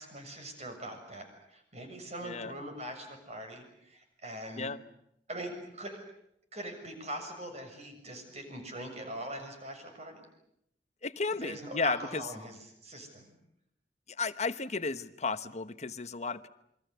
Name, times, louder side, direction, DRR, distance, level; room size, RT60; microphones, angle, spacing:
voice 1, 0.0-4.7 5.3-6.0 6.5-10.3 11.4-13.3, right 1 dB, 40° right, 5 dB, 7.0 m, -42 dB
voice 2, 11.0-12.2 14.2-16.5, left 4 dB, 40° left, 12 dB, 1.1 m, -33 dB
28.0 x 24.0 x 8.2 m, 0.76 s
head